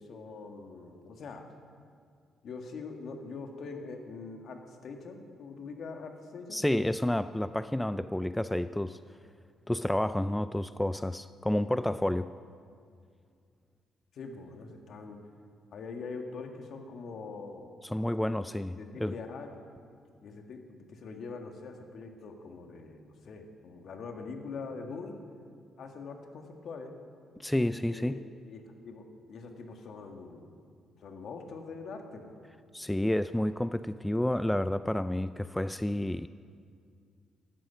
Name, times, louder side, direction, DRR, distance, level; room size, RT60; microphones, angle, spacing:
voice 1, 0.0-1.4 2.4-6.6 14.1-15.2 15.7-17.7 18.4-19.5 20.2-25.1 25.8-26.9 27.9-30.5 31.0-32.4, left 4 dB, 65° left, 4 dB, 1.8 m, -43 dB
voice 2, 6.5-9.0 9.7-12.3 17.8-19.1 27.4-28.2 32.7-36.3, left 1 dB, 5° left, 13 dB, 0.3 m, -30 dB
15.0 x 12.5 x 5.8 m, 2.2 s
cardioid pair, 90°, 0 cm